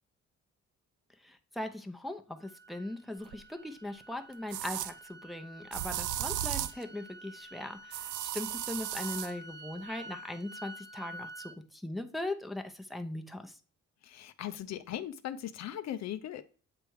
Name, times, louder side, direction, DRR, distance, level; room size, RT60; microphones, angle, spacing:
voice 1, 1.2-13.6, left 1 dB, ahead, 0.7 m, -40 dB
sound 1, 2.4-11.6, right 1 dB, 35° right, 1.0 m, -49 dB
sound 2, 3.3-3.4 4.5-4.9 5.7-6.8 7.9-9.3, right 12 dB, 80° right, 0.5 m, -35 dB
voice 2, 14.0-16.4, left 11 dB, 60° left, 0.5 m, -39 dB
7.8 x 3.4 x 4.6 m
cardioid pair, 90°, 30 cm